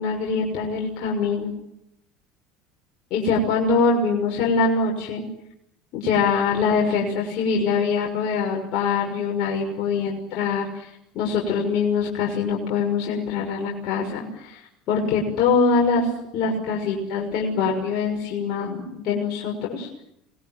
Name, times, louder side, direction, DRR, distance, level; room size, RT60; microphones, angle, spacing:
voice 1, 0.0-1.5 3.1-5.2 5.9-10.9 11.1-14.6 14.9-16.1 16.3-19.9, left 5 dB, 55° left, -1 dB, 6.3 m, -23 dB
26.5 x 21.0 x 9.5 m, 0.80 s
hypercardioid pair, 75°, 0 cm